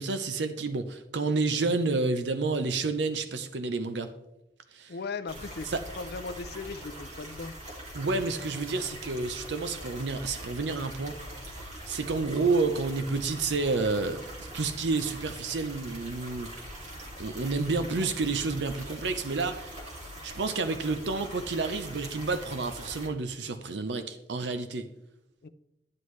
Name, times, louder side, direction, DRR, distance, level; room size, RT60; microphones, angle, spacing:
voice 1, 0.0-4.1 4.7-5.0 5.7-5.8 7.9-11.2 11.5-16.5 17.2-19.8 20.2-24.9, right 3 dB, 70° right, 9 dB, 0.6 m, -30 dB
voice 2, 4.9-5.7 6.0-7.5 25.4-25.5, left 4 dB, 60° left, 11 dB, 0.5 m, -37 dB
sound 1, 5.3-23.1, right 1 dB, 40° right, 2.5 m, -43 dB
11.5 x 9.7 x 3.2 m, 0.90 s
head